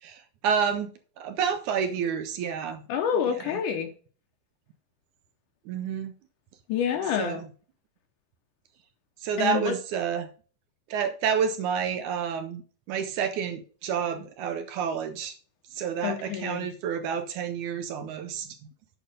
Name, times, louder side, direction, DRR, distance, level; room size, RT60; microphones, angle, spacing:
voice 1, 0.0-2.8 3.3-3.6 5.7-6.1 7.2-7.5 9.2-10.3 10.9-12.6 12.9-15.4 15.7-18.6, right 7 dB, 75° right, 9 dB, 1.9 m, -29 dB
voice 2, 2.9-3.9 6.7-7.4 9.4-9.7 16.0-16.7, left 8 dB, 75° left, 5 dB, 2.2 m, -28 dB
8.6 x 5.2 x 5.1 m, 0.41 s
omnidirectional pair, 3.9 m